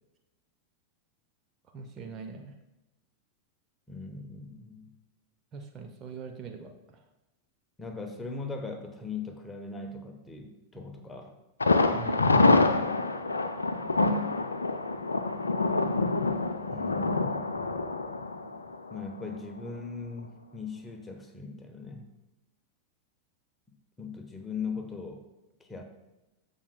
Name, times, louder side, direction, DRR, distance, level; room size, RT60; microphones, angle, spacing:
voice 1, 1.7-2.5 5.5-7.0 11.9-12.3, right 5 dB, 30° right, 4 dB, 0.8 m, -42 dB
voice 2, 3.9-4.8 7.8-11.3 16.7-17.5 18.9-22.1 24.0-25.2 25.6-25.8, left 4 dB, 10° left, 4 dB, 1.0 m, -39 dB
Thunder, 11.6-19.4 19.7-19.8 20.2-20.3, left 3 dB, 75° left, 0.5 m, -26 dB
14.5 x 5.4 x 2.2 m, 1.0 s
figure-of-eight pair, 90°, 0 cm